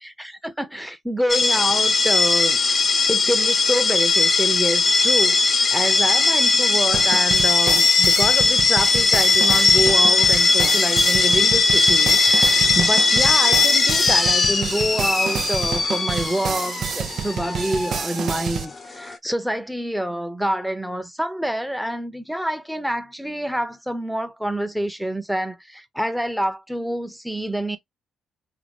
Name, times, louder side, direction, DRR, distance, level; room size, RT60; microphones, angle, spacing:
voice 1, 0.2-2.6 3.1-27.8, equal, ahead, 0.9 m, -27 dB
sound 1, 1.3-19.2, left 4 dB, 35° left, 0.8 m, -19 dB
sound 2, 6.9-18.6, right 7 dB, 60° right, 0.6 m, -29 dB
3.8 x 3.1 x 3.5 m
cardioid pair, 90°, 0 cm